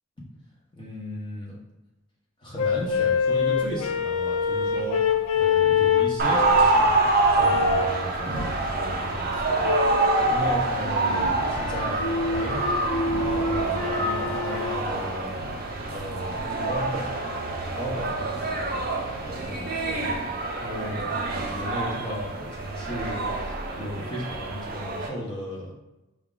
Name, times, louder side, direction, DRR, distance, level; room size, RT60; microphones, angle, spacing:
voice 1, 0.7-1.6 2.4-6.9 7.3-9.7 10.3-12.8 13.3-15.3 15.9-17.2 17.7-18.8 19.2-20.1 20.6-25.7, equal, 20° left, -4 dB, 0.9 m, -35 dB
sound 1, 2.6-6.8 7.4-8.0 9.6-10.3 10.8-14.8, left 6 dB, 80° left, 0.4 m, -26 dB
sound 2, 6.2-25.1, right 2 dB, 45° right, 0.5 m, -26 dB
4.5 x 2.4 x 3.7 m, 1.0 s
head